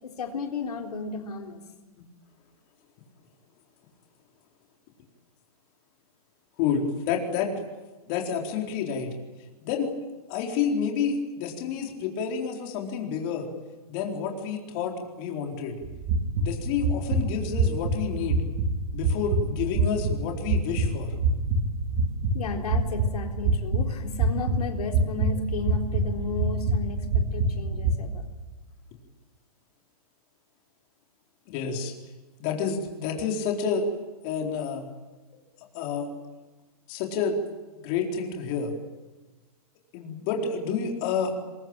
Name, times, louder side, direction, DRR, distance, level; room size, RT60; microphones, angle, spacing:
voice 1, 0.0-1.6 22.3-28.3, left 4 dB, 85° left, 3 dB, 3.8 m, -34 dB
voice 2, 6.6-7.6 8.1-9.1 9.6-9.9 10.3-13.5 13.9-15.8 16.4-18.4 18.9-21.1 31.5-31.9 32.4-33.9 34.2-34.8 35.7-36.1 36.9-37.4 37.7-38.7 39.9-41.3, left 6 dB, 35° left, 2 dB, 4.3 m, -29 dB
sound 1, 15.8-27.9, right 2 dB, 40° right, 3.9 m, -26 dB
24.0 x 22.0 x 9.0 m, 1.2 s
hypercardioid pair, 150°, 19 cm